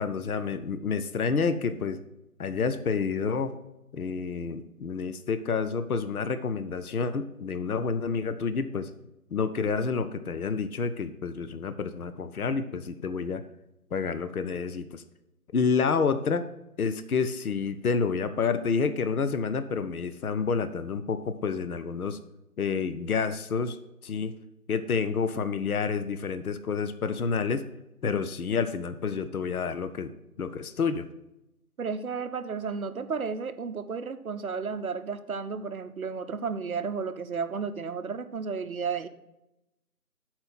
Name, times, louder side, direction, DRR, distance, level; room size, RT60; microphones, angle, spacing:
voice 1, 0.0-2.0 2.4-3.6 3.9-8.9 9.3-13.4 13.9-15.0 15.5-16.5 16.8-22.2 22.6-23.8 24.0-24.3 24.7-27.6 28.0-30.1 30.4-31.1, left 5 dB, 70° left, 11 dB, 0.7 m, -29 dB
voice 2, 31.8-39.1, right 5 dB, 65° right, 10 dB, 0.7 m, -33 dB
7.7 x 4.4 x 6.0 m, 0.92 s
figure-of-eight pair, 170°, 45 cm